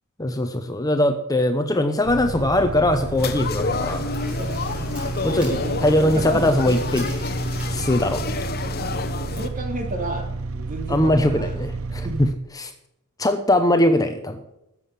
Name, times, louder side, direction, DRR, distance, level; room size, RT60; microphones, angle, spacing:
voice 1, 0.2-4.1 5.2-5.5 5.8-7.1 7.7-8.4 10.9-12.3 12.6-12.7 13.2-14.4, left 1 dB, 15° left, 8 dB, 0.9 m, -21 dB
sound 1, 2.0-12.3, right 3 dB, 65° right, 0.7 m, -31 dB
sound 2, 2.3-3.3 3.7-5.8 6.0-8.2 8.5-8.6 9.3-9.4, equal, 5° right, 5.6 m, -44 dB
sound 3, 3.2-9.5, left 3 dB, 45° left, 1.2 m, -29 dB
voice 2, 4.2-4.8 5.2-6.8 7.7-7.9 8.8-11.5 12.0-12.2, right 1 dB, 40° right, 3 dB, 3.2 m, -33 dB
13.0 x 7.8 x 8.5 m, 0.86 s
head